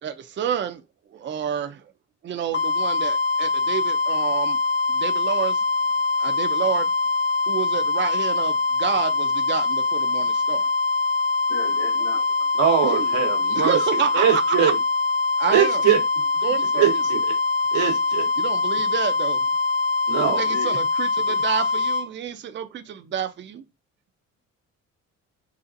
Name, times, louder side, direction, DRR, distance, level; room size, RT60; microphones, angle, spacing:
voice 1, 0.0-0.8 1.1-1.8 2.2-4.6 4.9-5.6 6.2-6.9 7.5-10.7 12.8-13.1 13.5-14.7 15.4-15.8 16.4-16.9 18.4-19.4 20.3-23.6, right 9 dB, 40° right, 0.5 m, -29 dB
sound 1, 2.5-22.1, left 4 dB, 40° left, 0.7 m, -23 dB
voice 2, 11.5-12.5 13.0-13.2 20.4-20.7, left 4 dB, 65° left, 1.8 m, -37 dB
voice 3, 12.6-14.7 15.5-16.0 16.8-17.2 17.7-18.3 20.1-20.4, right 9 dB, 90° right, 1.2 m, -22 dB
4.0 x 2.4 x 2.6 m
cardioid pair, 90°, 30 cm